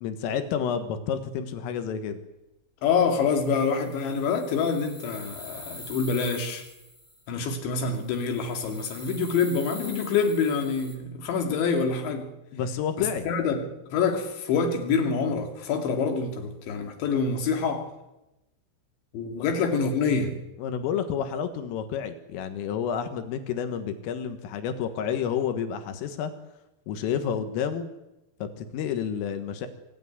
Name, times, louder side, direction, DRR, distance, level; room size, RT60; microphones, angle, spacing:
voice 1, 0.0-2.2 12.5-13.3 19.4-19.5 20.6-26.3 26.9-27.9 28.4-29.7, left 8 dB, 90° left, 8 dB, 4.1 m, -30 dB
voice 2, 2.8-6.6 7.3-12.3 13.0-17.9 19.1-20.4, left 5 dB, 65° left, 4 dB, 4.7 m, -26 dB
sound 1, 3.3-7.3 7.9-11.0, left 1 dB, 10° left, 3.1 m, -44 dB
25.0 x 15.0 x 9.6 m, 0.95 s
omnidirectional pair, 5.7 m